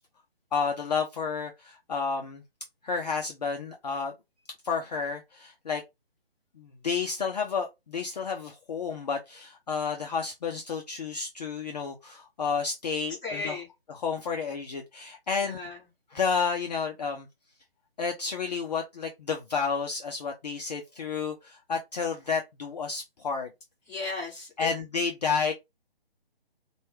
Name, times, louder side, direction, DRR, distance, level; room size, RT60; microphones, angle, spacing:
voice 1, 0.5-2.4 2.8-4.1 4.6-5.8 6.6-13.6 14.0-15.7 16.1-17.3 18.0-23.5 24.6-25.5, left 5 dB, 45° left, 0.6 m, -31 dB
voice 2, 13.2-13.7 15.4-15.8 23.9-24.7, left 4 dB, 10° left, 1.5 m, -35 dB
4.2 x 2.3 x 3.0 m
hypercardioid pair, 155°, 30 cm